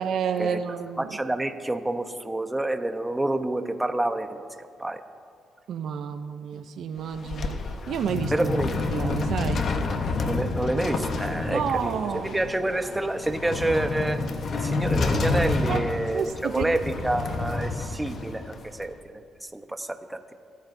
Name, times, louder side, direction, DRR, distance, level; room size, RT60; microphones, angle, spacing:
voice 1, 0.0-1.2 5.7-7.6 7.9-8.5 8.9-9.7 11.5-12.4 15.7-15.8 16.1-16.7, right 7 dB, 70° right, 9 dB, 0.6 m, -30 dB
voice 2, 1.0-4.5 4.8-5.0 8.3-8.7 10.2-14.2 14.5-20.3, right 1 dB, 10° right, 7 dB, 0.9 m, -28 dB
sound 1, 7.0-18.9, left 3 dB, 55° left, 1.1 m, -29 dB
25.0 x 13.5 x 2.7 m, 2.3 s
cardioid pair, 90°, 0 cm